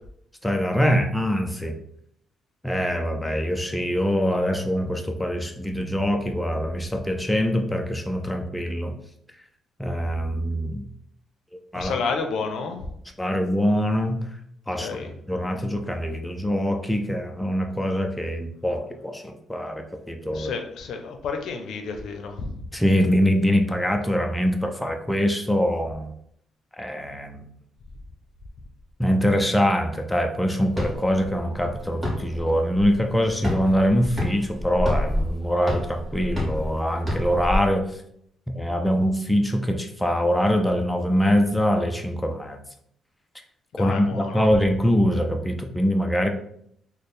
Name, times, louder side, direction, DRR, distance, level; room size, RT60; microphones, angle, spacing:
voice 1, 0.4-1.8 2.6-8.9 9.8-10.8 11.5-11.9 13.2-14.2 14.7-14.9 15.3-20.5 22.7-26.1 26.8-27.5 29.0-37.9 38.5-42.6 43.7-46.3, equal, 5° left, 4 dB, 0.4 m, -23 dB
voice 2, 11.7-12.8 14.8-15.1 20.3-22.6 43.7-44.4, left 4 dB, 70° left, 4 dB, 0.6 m, -30 dB
sound 1, 30.7-37.6, left 1 dB, 15° right, 1.4 m, -29 dB
3.3 x 2.1 x 4.2 m, 0.70 s
cardioid pair, 90°, 0 cm